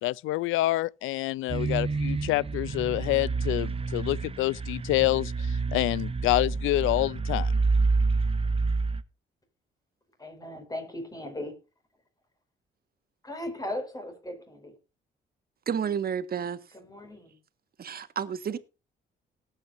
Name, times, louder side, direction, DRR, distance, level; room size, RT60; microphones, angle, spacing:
voice 1, 0.0-7.5, left 17 dB, 85° left, 0.4 m, -27 dB
sound 1, 1.5-9.0, right 4 dB, 30° right, 1.1 m, -28 dB
voice 2, 10.2-11.5 13.2-14.7 16.7-17.4, left 1 dB, 20° left, 5.3 m, -37 dB
voice 3, 15.7-16.6 17.8-18.6, right 7 dB, 50° right, 1.5 m, -30 dB
19.0 x 9.0 x 2.6 m
cardioid pair, 90°, 20 cm